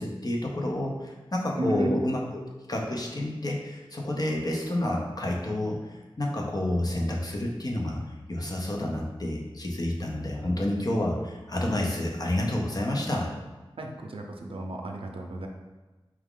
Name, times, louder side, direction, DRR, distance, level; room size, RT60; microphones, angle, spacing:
voice 1, 0.0-2.4 2.7-8.0 8.3-13.3, left 1 dB, 45° left, -1 dB, 0.7 m, -29 dB
voice 2, 1.6-1.9 13.8-15.5, right 1 dB, 75° right, 2 dB, 0.5 m, -33 dB
4.4 x 2.4 x 3.6 m, 1.2 s
wide cardioid pair, 70°, 9 cm